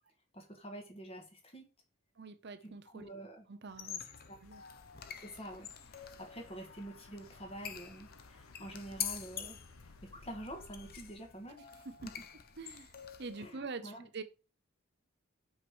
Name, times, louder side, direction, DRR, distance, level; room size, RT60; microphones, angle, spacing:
voice 1, 0.3-1.7 2.6-3.5 4.3-4.4 5.2-9.6 9.8-11.7 12.0-12.1 13.4-14.1, right 1 dB, 25° left, 1.7 m, -47 dB
voice 2, 2.2-3.1 3.5-4.0 4.4-4.6 11.8-11.9 12.6-14.2, right 4 dB, 50° right, 0.7 m, -45 dB
sound 1, 3.7-13.5, left 9 dB, 45° left, 0.8 m, -46 dB
sound 2, 4.4-11.1, left 3 dB, 75° left, 1.0 m, -58 dB
6.0 x 4.8 x 6.2 m
head